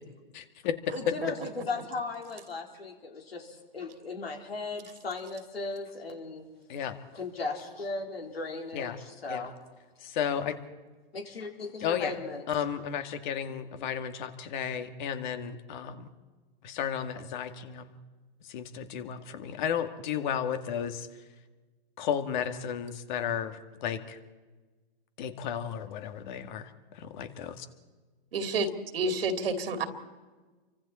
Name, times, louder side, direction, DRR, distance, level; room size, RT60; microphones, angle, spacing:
voice 1, 0.3-0.8 6.7-7.0 8.7-9.0 9.3-9.5 10.0-10.6 11.8-12.2 12.5-16.1 16.6-18.0 18.4-21.1 22.0-24.2 25.2-27.7, left 8 dB, 50° left, 8 dB, 2.2 m, -33 dB
voice 2, 0.9-6.4 7.1-9.5 11.1-12.4, left 3 dB, 90° left, 2 dB, 4.3 m, -37 dB
voice 3, 28.3-29.8, right 3 dB, 75° right, 7 dB, 2.7 m, -29 dB
29.5 x 25.0 x 4.4 m, 1.3 s
hypercardioid pair, 130°, 29 cm